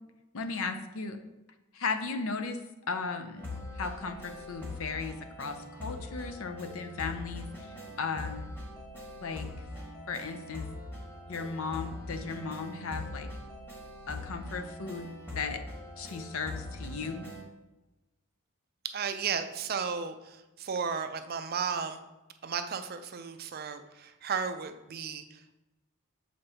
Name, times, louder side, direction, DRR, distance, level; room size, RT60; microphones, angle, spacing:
voice 1, 0.3-1.2 1.7-2.6 2.9-3.5 3.8-7.5 8.0-8.5 9.2-9.5 10.1-10.7 11.3-13.3 14.1-15.1 15.3-15.6 16.0-17.3, left 4 dB, 70° left, 8 dB, 0.6 m, -36 dB
sound 1, 3.4-17.4, left 2 dB, 10° left, 1.2 m, -42 dB
voice 2, 18.8-22.0 22.4-25.6, right 6 dB, 45° right, 9 dB, 0.4 m, -34 dB
6.9 x 5.1 x 2.8 m, 1.0 s
head